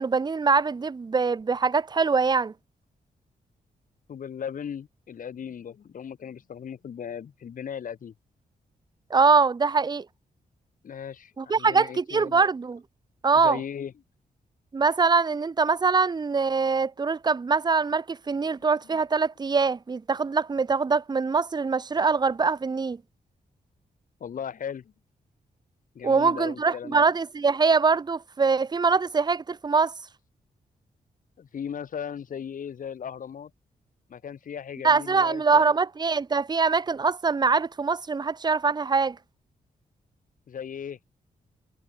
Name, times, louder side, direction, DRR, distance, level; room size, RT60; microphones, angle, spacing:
voice 1, 0.0-2.5 9.1-10.0 11.4-12.8 13.2-13.6 14.7-23.0 26.0-29.9 34.8-39.2, right 4 dB, 30° right, 0.9 m, -23 dB
voice 2, 4.1-8.1 10.8-12.4 13.3-13.9 18.8-19.0 24.2-24.9 25.9-27.0 31.4-33.5 34.1-35.6 40.5-41.0, left 8 dB, 60° left, 2.3 m, -37 dB
wide cardioid pair, 115°, 15 cm